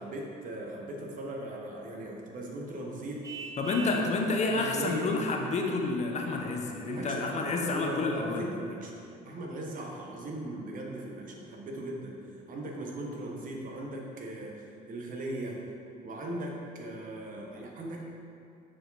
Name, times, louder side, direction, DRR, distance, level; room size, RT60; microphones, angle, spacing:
voice 1, 0.0-3.2 3.9-4.1 4.5-5.1 6.8-12.2 12.5-15.6 16.0-18.0, right 1 dB, 55° right, -1 dB, 1.1 m, -39 dB
Vehicle horn car horn honking, 3.2-4.1, right 5 dB, 20° right, 0.5 m, -41 dB
voice 2, 3.6-8.4, left 3 dB, 40° left, 1 dB, 0.8 m, -29 dB
6.1 x 4.8 x 4.1 m, 2.5 s
cardioid pair, 110°, 17 cm